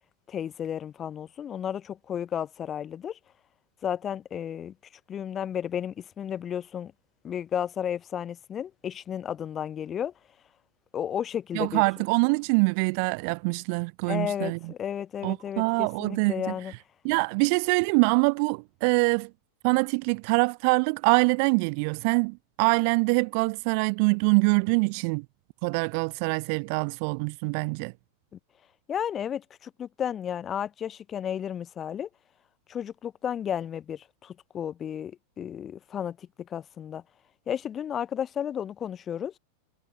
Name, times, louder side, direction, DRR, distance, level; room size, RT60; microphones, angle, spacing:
voice 1, 0.3-3.2 3.8-4.7 5.1-6.9 7.2-10.1 10.9-11.8 14.1-16.7 28.3-28.4 28.9-32.1 32.7-37.0 37.5-39.3, left 9 dB, 25° left, 2.5 m, -33 dB
voice 2, 11.5-14.6 15.2-16.3 17.0-19.3 19.6-25.2 25.6-27.9, right 36 dB, 45° right, 0.4 m, -24 dB
figure-of-eight pair, 90°, 0 cm